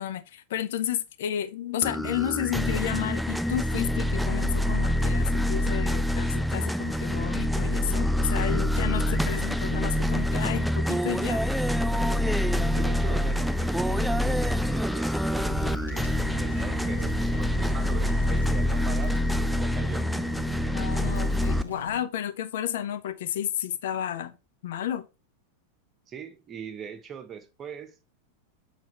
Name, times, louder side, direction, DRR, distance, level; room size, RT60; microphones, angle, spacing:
voice 1, 0.0-11.4 20.7-24.4 24.6-25.1, left 11 dB, 55° left, 0.6 m, -32 dB
sound 1, 1.8-21.6, left 1 dB, ahead, 0.3 m, -26 dB
voice 2, 12.7-20.1 26.1-28.0, right 7 dB, 25° right, 1.2 m, -41 dB
sound 2, 13.1-18.7, right 1 dB, 35° left, 4.2 m, -38 dB
sound 3, 15.5-22.0, left 3 dB, 85° left, 2.1 m, -41 dB
7.7 x 4.2 x 3.2 m
figure-of-eight pair, 90°, 0 cm